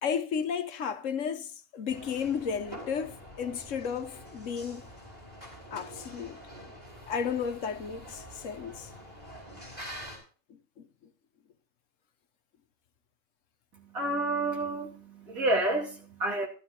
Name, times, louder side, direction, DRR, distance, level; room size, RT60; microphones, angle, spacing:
voice 1, 0.0-4.8 5.7-6.4 7.1-8.9 10.8-10.9, left 7 dB, 70° left, 1.2 m, -33 dB
sound 1, 1.9-10.2, equal, 20° right, 5.6 m, -46 dB
voice 2, 13.7-16.5, right 2 dB, 85° right, 3.0 m, -30 dB
15.5 x 12.0 x 2.9 m
omnidirectional pair, 1.4 m